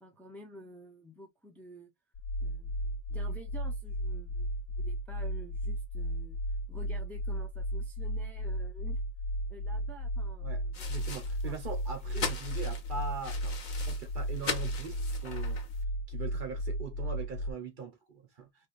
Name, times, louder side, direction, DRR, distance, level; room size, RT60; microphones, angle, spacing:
voice 1, 0.0-1.9 2.4-6.4 6.7-9.0 9.5-10.9 11.4-11.6, right 1 dB, ahead, 0.7 m, -50 dB
sound 1, 2.1-17.5, equal, 70° left, 0.8 m, -34 dB
sound 2, 10.7-15.8, left 5 dB, 50° left, 0.9 m, -40 dB
voice 2, 10.9-13.6 13.9-15.6 16.1-18.5, right 4 dB, 55° right, 1.0 m, -41 dB
3.3 x 2.6 x 2.4 m
omnidirectional pair, 1.1 m